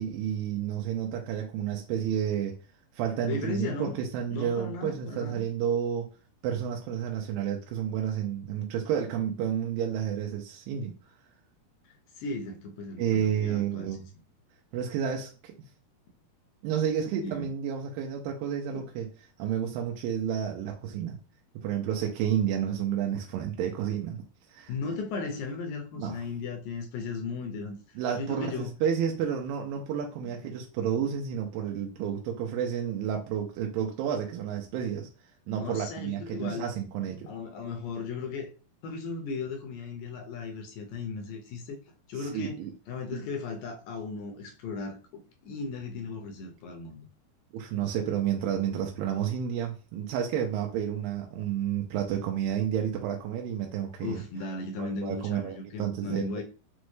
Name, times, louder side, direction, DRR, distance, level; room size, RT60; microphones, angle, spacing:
voice 1, 0.0-2.6 2.9-6.1 6.4-10.9 13.0-14.1 14.7-15.5 16.6-19.1 19.4-21.2 21.6-24.2 24.5-24.7 26.0-26.2 28.0-35.1 35.5-37.3 42.1-42.7 43.1-43.2 47.5-54.2 54.8-56.4, right 9 dB, 85° right, 2.3 m, -31 dB
voice 2, 3.3-4.0 4.3-5.5 12.2-13.9 17.2-17.5 18.7-18.9 24.7-28.7 30.2-30.3 35.5-36.7 37.3-38.5 38.8-41.8 42.1-42.6 42.9-45.0 45.4-47.1 54.0-56.4, left 4 dB, 80° left, 2.1 m, -36 dB
6.1 x 2.1 x 3.1 m
omnidirectional pair, 4.1 m